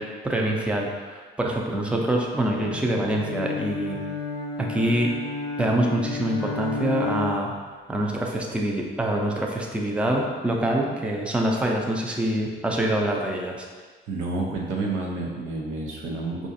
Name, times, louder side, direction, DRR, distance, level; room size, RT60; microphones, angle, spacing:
voice 1, 0.0-4.0 4.6-5.1 5.6-7.5 7.9-13.7, right 1 dB, 5° right, -1 dB, 0.4 m, -25 dB
Bowed string instrument, 2.4-7.6, left 4 dB, 85° left, 0.7 m, -32 dB
voice 2, 14.1-16.5, right 3 dB, 90° right, -1 dB, 0.7 m, -29 dB
4.7 x 2.5 x 2.6 m, 1.5 s
cardioid pair, 90°, 20 cm